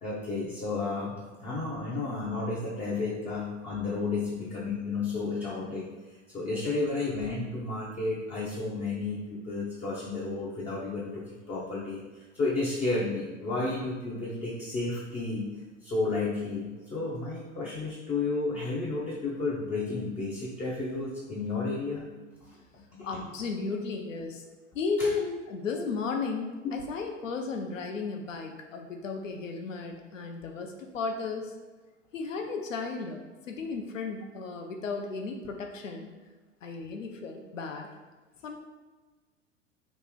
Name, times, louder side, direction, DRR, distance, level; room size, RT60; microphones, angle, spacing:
voice 1, 0.0-5.9 6.3-12.0 12.3-15.5 15.8-22.0 22.4-22.5 23.0-23.1 25.0-25.1 26.6-26.7, left 3 dB, 15° left, -5 dB, 0.5 m, -32 dB
voice 2, 23.0-24.4 24.7-31.5 32.1-33.2 33.5-36.1 36.6-37.9 38.4-38.6, left 4 dB, 75° left, 3 dB, 0.7 m, -34 dB
3.0 x 2.5 x 3.7 m, 1.3 s
figure-of-eight pair, 90°, 39 cm